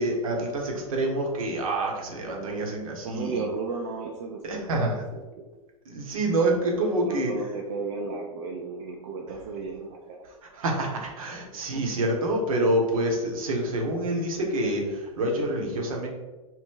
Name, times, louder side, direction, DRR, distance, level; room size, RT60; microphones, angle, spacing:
voice 1, 0.0-3.4 4.4-5.0 5.9-7.3 10.5-16.1, right 1 dB, 70° right, 1 dB, 0.8 m, -27 dB
voice 2, 2.3-2.7 3.0-5.4 6.5-6.6 7.0-10.3 11.6-11.9, right 4 dB, 50° right, 0 dB, 0.4 m, -35 dB
2.8 x 2.0 x 3.6 m, 1.2 s
figure-of-eight pair, 95°, 19 cm